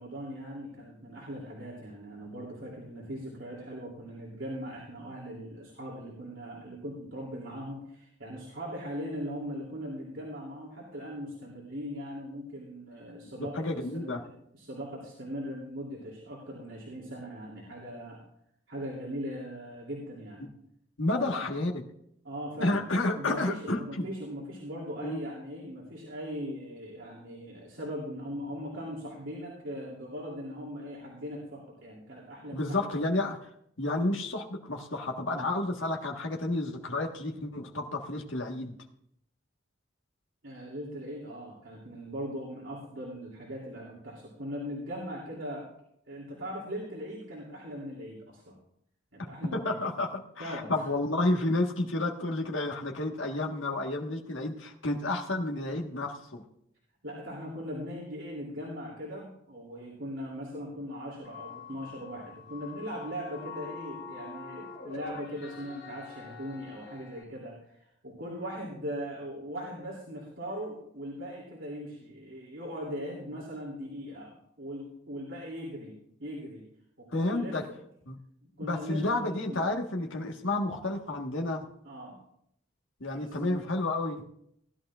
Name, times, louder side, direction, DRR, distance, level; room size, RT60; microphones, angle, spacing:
voice 1, 0.0-18.2 18.7-20.5 21.2-21.4 22.2-22.8 23.1-32.9 40.4-45.7 46.1-48.5 49.1-49.9 50.4-50.7 57.0-75.9 76.2-76.6 77.0-77.8 78.6-79.6 81.8-82.1 83.1-83.5, equal, 75° right, -4 dB, 3.0 m, -40 dB
voice 2, 13.4-14.2 21.0-21.8 22.6-24.1 25.0-25.2 32.5-33.5 33.8-38.7 49.5-56.4 77.1-77.7 78.1-78.2 78.6-81.7 83.0-84.2, left 2 dB, 75° left, 1 dB, 1.5 m, -31 dB
sound 1, 61.2-67.2, left 5 dB, 50° left, 3.0 m, -45 dB
18.5 x 11.5 x 2.5 m, 0.71 s
head